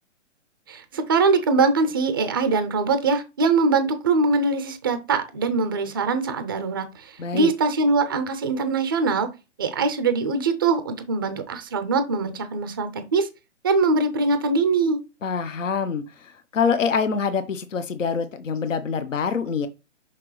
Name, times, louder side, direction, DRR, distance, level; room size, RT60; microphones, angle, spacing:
voice 1, 0.7-9.3 9.6-13.3 13.6-15.0, right 4 dB, 20° right, 0.4 m, -22 dB
voice 2, 7.2-7.5 15.2-19.7, left 6 dB, 80° left, 0.9 m, -25 dB
6.0 x 5.9 x 3.1 m
hypercardioid pair, 140°, 37 cm